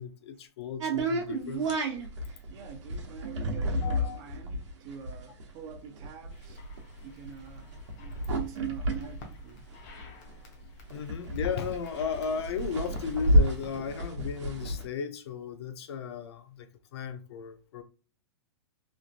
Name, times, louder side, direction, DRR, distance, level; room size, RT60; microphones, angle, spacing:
voice 1, 0.0-1.7 3.8-4.2 10.9-17.8, left 6 dB, 65° left, 0.5 m, -35 dB
sound 1, 0.8-10.3 10.6-10.7 10.9-14.8, right 1 dB, 85° right, 1.0 m, -30 dB
voice 2, 2.4-6.6 7.0-9.7, right 6 dB, 25° right, 0.4 m, -48 dB
sound 2, 6.3-13.8, left 2 dB, 40° left, 0.8 m, -51 dB
3.1 x 2.5 x 2.4 m
hypercardioid pair, 160°, 15 cm